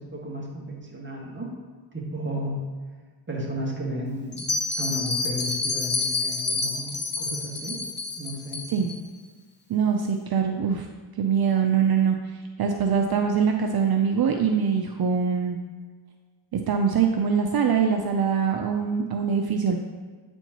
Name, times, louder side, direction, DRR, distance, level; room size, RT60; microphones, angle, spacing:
voice 1, 0.0-1.5 1.9-2.6 3.3-4.4 4.8-7.8 8.2-8.6, equal, 25° right, -2 dB, 1.7 m, -33 dB
Bell, 4.3-9.0, left 3 dB, 20° left, 0.8 m, -28 dB
voice 2, 9.7-10.9 11.2-12.2 12.6-15.6 16.5-19.8, right 6 dB, 50° right, 4 dB, 0.6 m, -23 dB
8.9 x 4.4 x 2.9 m, 1.5 s
cardioid pair, 75°, 47 cm